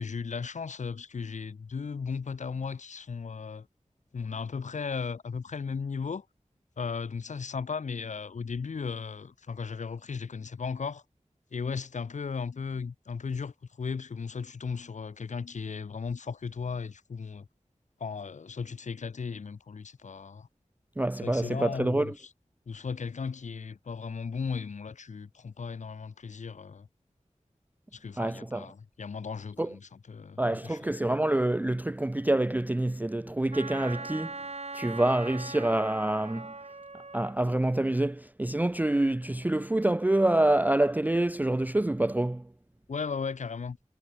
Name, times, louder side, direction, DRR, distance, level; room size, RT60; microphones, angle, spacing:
voice 1, 0.0-3.7 4.1-6.3 6.8-11.0 11.5-17.5 18.0-20.5 21.2-22.3 22.7-26.9 27.9-30.8 42.9-43.8, left 5 dB, 70° left, 0.5 m, -36 dB
voice 2, 21.0-22.1 28.2-28.7 29.6-29.7 30.4-34.3 34.7-36.5 37.1-42.4, right 1 dB, 15° right, 0.4 m, -26 dB
Wind instrument woodwind instrument, 33.5-37.4, right 3 dB, 55° right, 1.6 m, -40 dB
wide cardioid pair, 50°, 13 cm